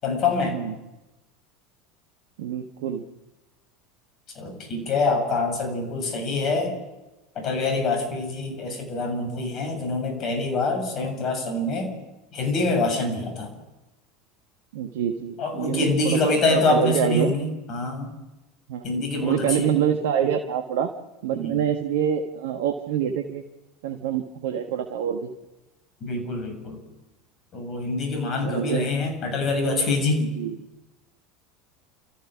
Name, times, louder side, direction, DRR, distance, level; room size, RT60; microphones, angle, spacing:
voice 1, 0.0-0.6 4.4-6.8 7.4-11.9 12.3-13.5 15.4-18.1 18.8-19.7 21.3-21.6 26.0-26.8 27.5-30.2, left 3 dB, 45° left, 5 dB, 7.3 m, -25 dB
voice 2, 2.4-3.1 14.7-16.2 16.5-17.4 18.7-20.9 21.2-23.4 23.8-25.3 28.4-28.9 30.2-30.6, right 8 dB, 65° right, 5 dB, 1.4 m, -26 dB
30.0 x 14.5 x 6.2 m, 1.0 s
figure-of-eight pair, 75°, 0 cm